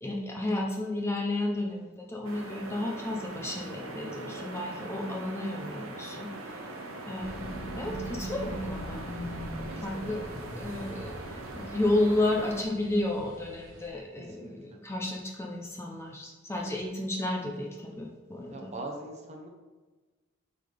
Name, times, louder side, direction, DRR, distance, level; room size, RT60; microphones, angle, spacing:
voice 1, 0.0-6.6 7.0-7.4 7.8-9.0 9.8-10.2 10.5-18.7, left 1 dB, 10° left, 0 dB, 0.6 m, -32 dB
sound 1, 2.2-12.6, right 2 dB, 90° right, 0.9 m, -42 dB
sound 2, 7.2-13.9, equal, 15° right, 1.5 m, -41 dB
voice 2, 9.7-10.0 14.4-14.8 18.5-19.5, right 2 dB, 35° right, 1 dB, 0.9 m, -41 dB
8.8 x 3.9 x 3.4 m, 1.2 s
head